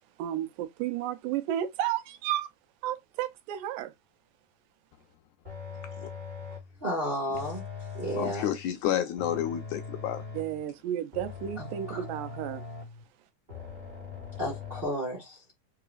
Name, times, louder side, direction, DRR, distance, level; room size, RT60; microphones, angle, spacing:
voice 1, 0.2-2.5 2.8-3.9 10.3-12.6, right 11 dB, 90° right, 2.3 m, -32 dB
sound 1, 5.4-6.8 7.3-8.7 9.2-10.6 11.1-13.0 13.5-14.8, left 5 dB, 25° right, 1.0 m, -41 dB
voice 2, 6.8-7.6 7.9-8.5 11.6-12.0 14.4-15.4, equal, 60° right, 0.5 m, -32 dB
voice 3, 8.1-10.2, left 10 dB, 80° left, 1.8 m, -30 dB
4.7 x 3.8 x 2.4 m
omnidirectional pair, 3.8 m